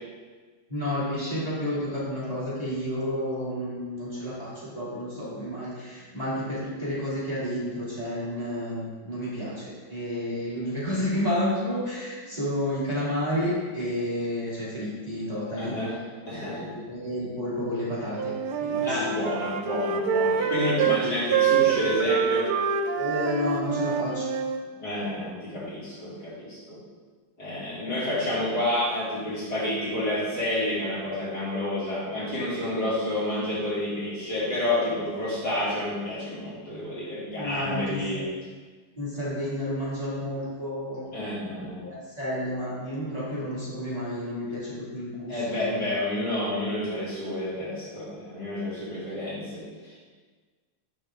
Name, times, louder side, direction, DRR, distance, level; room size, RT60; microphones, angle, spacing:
voice 1, 0.7-15.7 16.5-18.3 18.6-19.0 22.9-24.3 37.3-38.0 39.0-41.1 41.8-45.8, equal, 20° right, -11 dB, 2.7 m, -31 dB
voice 2, 15.5-16.0 16.2-16.7 18.8-22.5 24.8-26.8 27.4-38.3 41.1-41.8 45.3-50.1, left 1 dB, 50° left, -9 dB, 3.1 m, -29 dB
Wind instrument woodwind instrument, 18.2-21.0 21.3-24.6, right 7 dB, 90° right, 1.5 m, -26 dB
9.1 x 6.5 x 3.7 m, 1.4 s
omnidirectional pair, 2.3 m